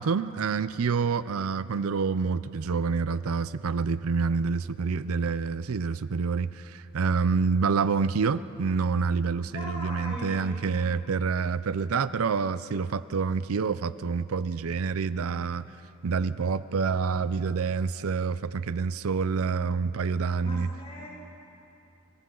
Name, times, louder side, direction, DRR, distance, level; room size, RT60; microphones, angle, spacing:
voice 1, 0.0-15.6 16.0-20.7, right 5 dB, 75° right, 15 dB, 0.5 m, -27 dB
voice 2, 9.5-10.5 20.4-21.1, left 1 dB, 30° left, -5 dB, 6.4 m, -39 dB
30.0 x 26.0 x 3.9 m, 3.0 s
head